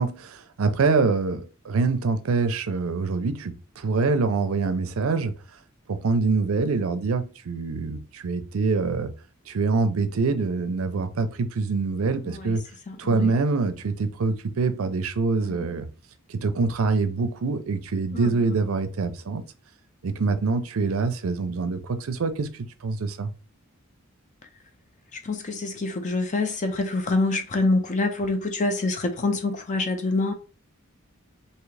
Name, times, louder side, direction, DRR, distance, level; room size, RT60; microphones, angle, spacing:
voice 1, 0.0-5.3 5.9-9.1 9.5-12.6 13.0-15.9 16.3-19.4 20.0-23.3, right 4 dB, 80° right, 0.5 m, -25 dB
voice 2, 12.9-13.4 15.4-15.6 18.1-18.3 25.1-30.3, left 2 dB, 35° left, 0.5 m, -26 dB
3.6 x 2.8 x 3.2 m
head